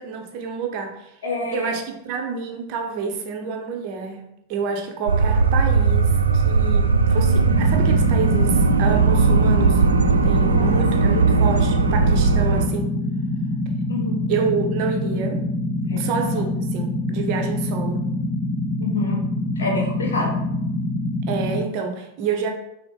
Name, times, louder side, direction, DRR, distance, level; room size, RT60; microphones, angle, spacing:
voice 1, 0.0-1.1 1.5-4.2 4.5-9.8 10.2-13.0 14.3-15.4 15.8-18.1 21.3-22.5, right 5 dB, 45° right, 4 dB, 0.7 m, -28 dB
voice 2, 1.2-1.8 10.4-10.7 11.0-11.2 13.9-14.3 15.8-16.4 18.8-19.2 19.6-20.4, left 2 dB, 60° left, 0 dB, 0.8 m, -28 dB
sound 1, 5.1-12.7, right 4 dB, 75° right, 0.3 m, -18 dB
sound 2, 7.4-21.6, left 1 dB, 20° left, 1.2 m, -25 dB
5.9 x 2.1 x 3.6 m, 0.81 s
figure-of-eight pair, 90°, 0 cm